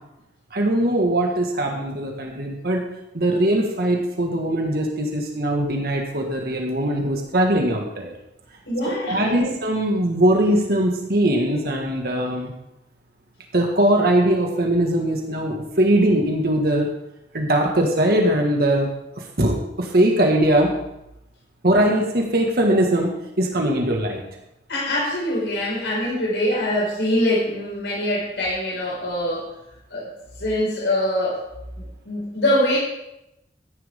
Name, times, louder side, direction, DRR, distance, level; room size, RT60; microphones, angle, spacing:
voice 1, 0.5-2.8 3.1-8.1 8.8-12.5 13.5-16.9 17.3-18.9 19.4-20.7 21.6-24.2, right 1 dB, 60° right, 1 dB, 1.8 m, -21 dB
voice 2, 8.7-9.5 24.7-29.5 29.9-30.0 30.4-31.4 31.8-32.8, left 1 dB, 90° left, -5 dB, 5.5 m, -23 dB
14.0 x 10.5 x 3.7 m, 0.86 s
head